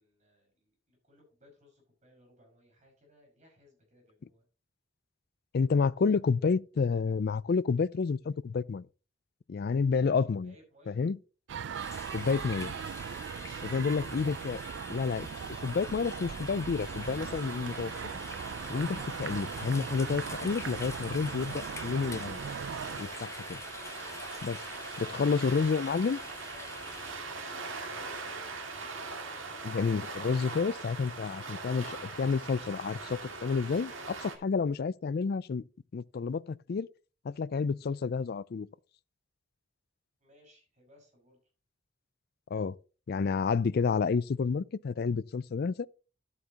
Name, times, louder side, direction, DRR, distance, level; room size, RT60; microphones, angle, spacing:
voice 1, 0.0-4.5 10.4-11.0 13.0-13.7 24.6-28.9 40.2-41.4, left 1 dB, 35° right, 5.5 m, -61 dB
voice 2, 5.5-8.9 9.5-10.5 10.9-11.2 12.1-12.7 13.6-14.6 14.9-15.3 15.6-17.9 18.7-22.4 23.0-23.6 24.4-24.6 25.0-26.2 29.6-35.6 35.9-36.9 37.2-38.7 42.5-42.8 43.1-45.9, left 5 dB, 50° left, 0.4 m, -30 dB
sound 1, 11.5-23.0, right 7 dB, 65° right, 0.4 m, -40 dB
sound 2, 11.7-27.2, left 3 dB, 15° left, 1.0 m, -47 dB
sound 3, 16.8-34.4, right 3 dB, 80° right, 2.2 m, -42 dB
12.0 x 8.3 x 2.9 m
head